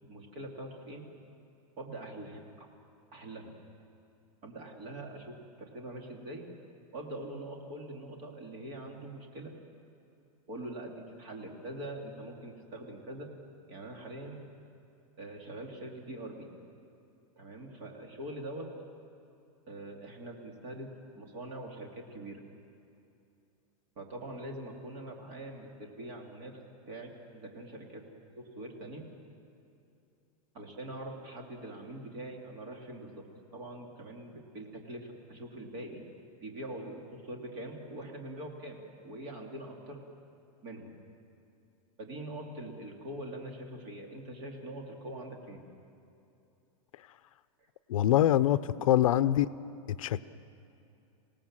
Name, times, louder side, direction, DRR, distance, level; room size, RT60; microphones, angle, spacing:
voice 1, 0.0-1.0 1.8-2.7 3.1-3.6 4.4-6.5 6.9-9.5 10.5-13.3 13.7-14.4 15.2-16.5 17.4-18.7 19.7-20.9 21.1-22.4 24.0-26.6 26.9-28.0 28.3-29.0 30.5-33.2 33.5-36.0 36.4-40.0 40.6-40.9 42.0-45.7 47.6-47.7 48.9-49.3, right 1 dB, 35° right, 1 dB, 2.9 m, -43 dB
voice 2, 47.9-48.6 48.9-49.5 49.9-50.2, left 12 dB, 65° left, 14 dB, 0.6 m, -24 dB
27.0 x 18.0 x 7.5 m, 2.7 s
supercardioid pair, 175°, 18 cm